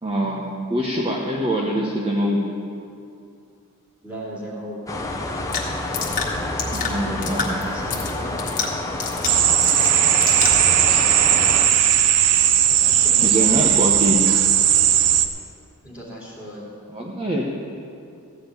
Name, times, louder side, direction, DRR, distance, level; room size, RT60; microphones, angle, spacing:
voice 1, 0.0-2.4 6.7-7.6 13.2-14.3 16.9-17.4, right 1 dB, 25° right, -3 dB, 1.0 m, -24 dB
voice 2, 4.0-4.9 7.5-8.5 12.6-13.8 15.8-16.7, equal, 5° right, -7 dB, 2.9 m, -36 dB
sound 1, 4.9-11.7, left 2 dB, 15° left, 0.8 m, -29 dB
sound 2, 5.5-10.7, left 5 dB, 40° left, 1.5 m, -30 dB
sound 3, 9.3-15.3, right 10 dB, 90° right, 0.6 m, -17 dB
15.0 x 5.2 x 9.1 m, 2.5 s
head